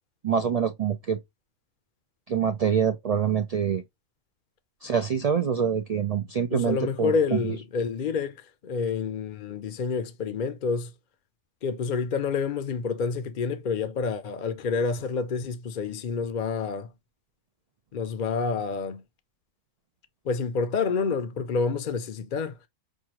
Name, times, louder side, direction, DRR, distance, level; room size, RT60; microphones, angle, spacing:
voice 1, 0.2-1.2 2.3-3.8 4.8-7.6, right 7 dB, 70° right, 0.3 m, -25 dB
voice 2, 6.5-10.9 11.6-16.9 17.9-19.0 20.2-22.6, left 5 dB, 55° left, 0.6 m, -28 dB
6.2 x 2.3 x 2.8 m
omnidirectional pair, 1.3 m